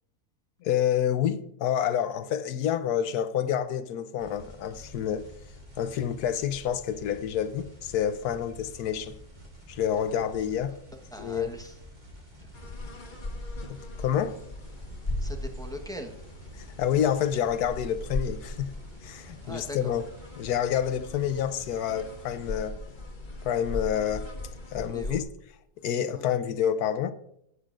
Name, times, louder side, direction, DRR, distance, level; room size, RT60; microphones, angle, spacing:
voice 1, 0.6-5.3 5.8-9.1 9.7-10.8 11.2-11.5 13.7-14.4 16.6-18.7 19.0-20.0 20.4-22.8 23.4-24.2 24.7-25.3 25.8-27.1, left 9 dB, 80° left, 1.2 m, -28 dB
sound 1, 4.2-22.7, equal, 30° right, 2.3 m, -49 dB
voice 2, 10.6-11.8 12.4-12.5 15.2-16.2 19.4-20.0 24.9-25.2 26.1-26.3, equal, 5° left, 0.9 m, -41 dB
sound 2, 12.5-25.2, left 2 dB, 30° left, 1.4 m, -38 dB
15.0 x 9.5 x 2.5 m
omnidirectional pair, 1.6 m